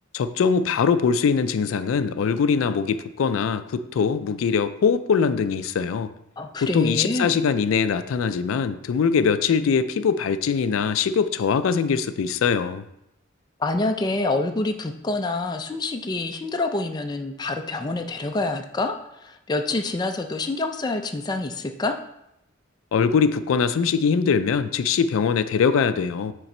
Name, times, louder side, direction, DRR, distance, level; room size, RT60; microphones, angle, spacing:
voice 1, 0.1-6.1 6.6-12.8 22.9-26.3, left 6 dB, 90° left, 12 dB, 0.4 m, -22 dB
voice 2, 6.4-7.4 13.6-22.0, left 2 dB, 20° left, 5 dB, 0.4 m, -27 dB
5.8 x 3.8 x 4.2 m, 0.82 s
head